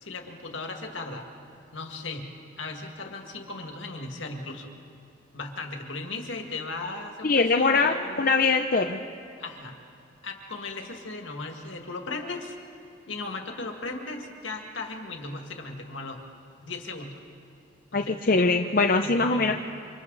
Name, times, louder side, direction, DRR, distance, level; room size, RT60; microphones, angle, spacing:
voice 1, 0.0-1.3 1.7-2.3 2.6-4.8 5.3-8.3 9.4-9.8 10.2-12.6 13.1-16.2 16.6-17.2 17.9-19.5, left 3 dB, 75° left, 3 dB, 2.2 m, -37 dB
voice 2, 7.2-9.0 17.9-19.5, left 3 dB, 45° left, 4 dB, 0.7 m, -22 dB
28.0 x 26.0 x 4.1 m, 2.5 s
head